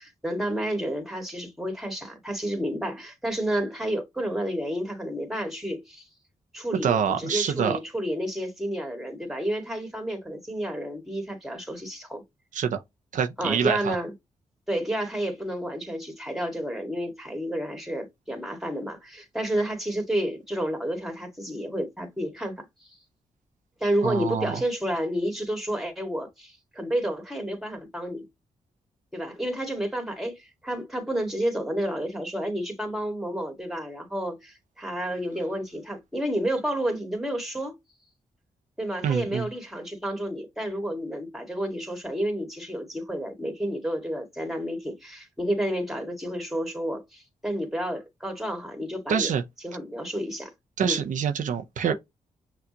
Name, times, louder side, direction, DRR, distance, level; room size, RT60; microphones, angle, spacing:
voice 1, 0.0-6.0 6.5-12.2 13.4-14.1 14.7-22.7 23.8-28.3 29.1-37.8 38.8-49.3 49.6-50.5 50.8-51.0, equal, ahead, 1.9 m, -30 dB
voice 2, 6.8-7.8 12.5-12.8 13.1-14.0 24.0-24.6 39.0-39.5 49.1-49.4 50.8-51.9, right 7 dB, 70° right, 0.6 m, -26 dB
5.9 x 2.3 x 2.9 m
cardioid pair, 65°, 13 cm